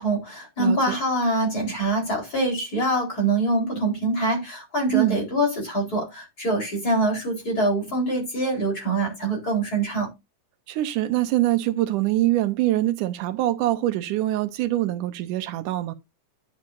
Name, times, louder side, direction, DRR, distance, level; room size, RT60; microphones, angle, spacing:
voice 1, 0.0-10.1, right 2 dB, 30° left, 4.4 m, -24 dB
voice 2, 0.6-1.0 4.9-5.2 10.7-15.9, right 15 dB, 85° right, 2.4 m, -24 dB
10.5 x 8.6 x 2.6 m
omnidirectional pair, 3.6 m